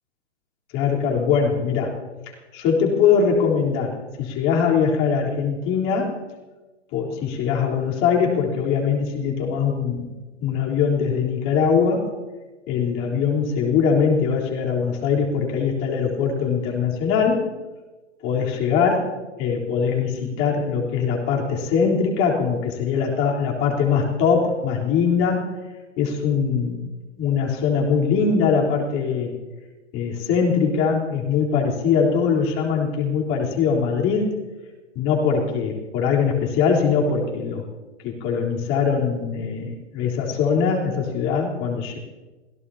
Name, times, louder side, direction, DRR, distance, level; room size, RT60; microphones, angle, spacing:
voice 1, 0.7-2.0 2.5-6.2 6.9-10.1 10.4-12.1 12.7-17.4 18.2-25.5 26.0-26.9 27.2-29.3 29.9-34.3 35.0-37.6 38.0-42.0, left 6 dB, 35° left, -2 dB, 3.8 m, -22 dB
27.5 x 16.5 x 2.9 m, 1.2 s
hypercardioid pair, 125°, 36 cm